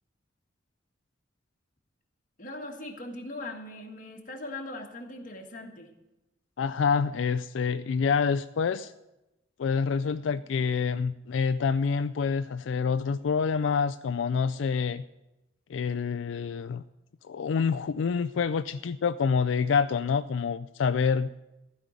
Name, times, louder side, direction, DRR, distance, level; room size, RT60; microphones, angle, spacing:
voice 1, 2.4-5.9, left 2 dB, 45° left, 2 dB, 1.7 m, -40 dB
voice 2, 6.6-8.9 9.6-15.0 15.7-16.8 17.3-21.3, left 5 dB, 85° left, 11 dB, 0.4 m, -27 dB
15.0 x 5.4 x 9.6 m, 0.95 s
head